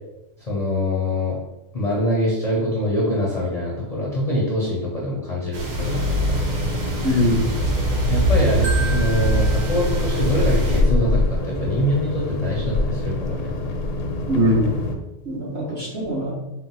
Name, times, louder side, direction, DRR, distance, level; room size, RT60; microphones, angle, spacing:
voice 1, 0.4-1.4 1.7-6.4 8.1-13.5, left 1 dB, 40° left, -5 dB, 0.6 m, -24 dB
sound 1, 5.5-10.8, right 5 dB, 90° right, 1.2 m, -26 dB
sound 2, 5.8-14.9, left 2 dB, 75° left, 0.9 m, -24 dB
voice 2, 7.0-7.5 14.3-14.7 15.2-16.3, equal, 50° right, -7 dB, 1.6 m, -21 dB
Marimba xylophone, 8.6-10.7, right 4 dB, 30° right, 0.6 m, -34 dB
4.4 x 2.0 x 4.1 m, 0.97 s
omnidirectional pair, 1.3 m